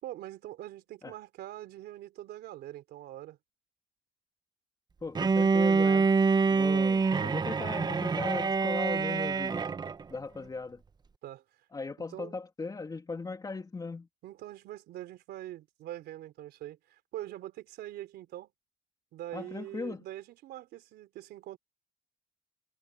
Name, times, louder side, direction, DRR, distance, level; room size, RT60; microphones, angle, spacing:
voice 1, 0.0-3.4 11.2-11.4 12.1-12.3 14.2-18.5 19.1-21.6, right 14 dB, 75° right, 3.5 m, -43 dB
voice 2, 5.0-6.1 6.5-9.7 10.1-10.8 11.7-14.1 19.3-20.0, left 3 dB, 20° left, 2.6 m, -38 dB
Bowed string instrument, 5.2-10.0, right 4 dB, 25° right, 0.9 m, -26 dB
cardioid pair, 110°, 17 cm